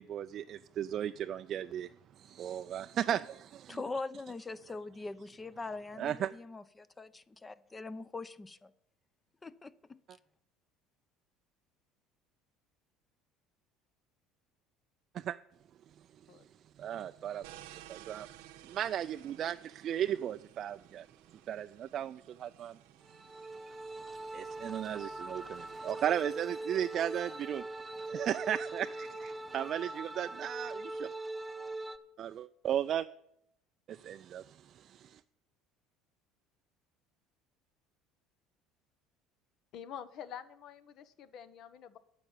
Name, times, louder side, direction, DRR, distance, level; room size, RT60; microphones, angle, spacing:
voice 1, 0.0-1.9 2.2-3.8 6.0-6.3 15.1-15.4 16.8-18.3 18.6-22.8 23.1-23.2 24.2-27.6 28.0-31.1 32.2-33.1 33.9-35.2, right 10 dB, 50° right, 0.4 m, -36 dB
voice 2, 3.7-8.7 9.4-10.0, left 3 dB, 20° left, 0.7 m, -42 dB
sound 1, 17.4-25.8, right 13 dB, 80° right, 0.8 m, -57 dB
sound 2, 23.0-32.0, right 2 dB, 15° right, 1.0 m, -42 dB
voice 3, 39.7-42.0, left 9 dB, 60° left, 1.0 m, -47 dB
9.8 x 6.9 x 8.8 m
hypercardioid pair, 75°, 0 cm